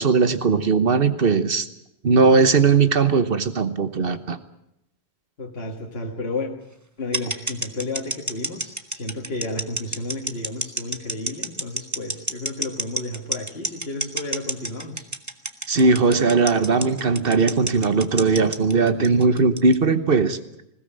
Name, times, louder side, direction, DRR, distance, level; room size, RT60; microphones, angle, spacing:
voice 1, 0.0-1.7 2.0-4.4 15.7-20.4, right 4 dB, 60° right, 12 dB, 1.3 m, -19 dB
voice 2, 5.4-6.5 7.0-15.1, left 2 dB, 70° left, 1 dB, 2.1 m, -32 dB
sound 1, 7.1-19.7, right 2 dB, 15° right, 1.1 m, -28 dB
20.5 x 16.5 x 8.9 m, 0.83 s
omnidirectional pair, 1.1 m